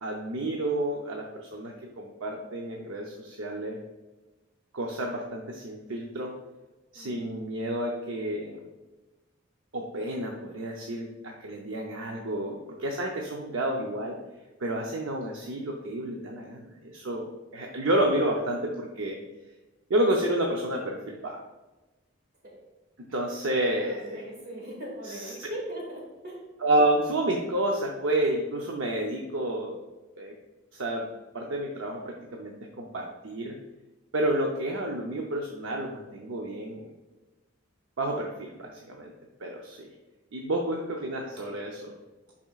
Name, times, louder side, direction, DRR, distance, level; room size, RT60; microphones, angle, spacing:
voice 1, 0.0-3.8 4.7-6.3 6.9-8.6 9.7-14.2 14.6-17.3 17.5-19.2 19.9-21.4 23.0-24.2 25.0-25.5 26.6-29.8 30.2-30.3 30.7-31.1 31.3-33.6 34.1-36.9 38.0-39.1 39.4-39.9 40.3-41.9, right 1 dB, 70° right, 0 dB, 0.7 m, -30 dB
voice 2, 6.9-7.3 22.4-22.6 23.7-26.4, right 1 dB, 50° right, -2 dB, 2.0 m, -40 dB
10.5 x 4.3 x 2.4 m, 1.1 s
head